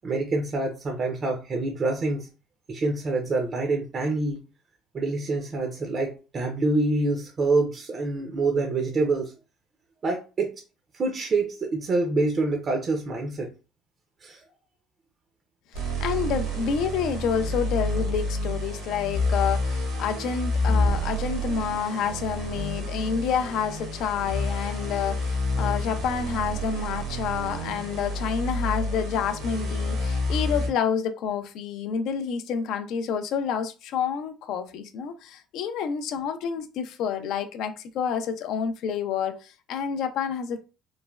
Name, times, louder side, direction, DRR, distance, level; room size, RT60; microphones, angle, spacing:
voice 1, 0.0-2.3 2.7-4.4 4.9-9.3 10.0-10.5 10.9-13.5 14.2-14.4, right 3 dB, 35° right, 0.4 m, -26 dB
voice 2, 15.7-40.6, left 7 dB, 70° left, 0.4 m, -29 dB
sound 1, 15.7-30.7, left 1 dB, 90° right, 1.0 m, -29 dB
3.1 x 2.1 x 2.2 m
cardioid pair, 120°, 0 cm